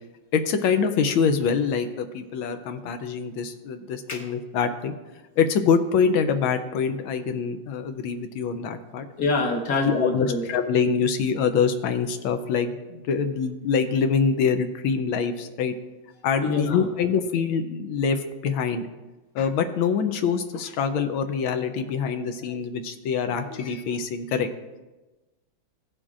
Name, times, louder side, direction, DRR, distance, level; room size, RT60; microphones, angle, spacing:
voice 1, 0.3-4.9 5.4-9.1 9.8-15.7 16.2-18.8 19.3-24.5, left 6 dB, 80° left, 7 dB, 1.4 m, -25 dB
voice 2, 9.2-10.4 16.4-16.9, left 3 dB, 50° left, 2 dB, 1.6 m, -25 dB
16.0 x 7.4 x 2.4 m, 1.1 s
omnidirectional pair, 2.2 m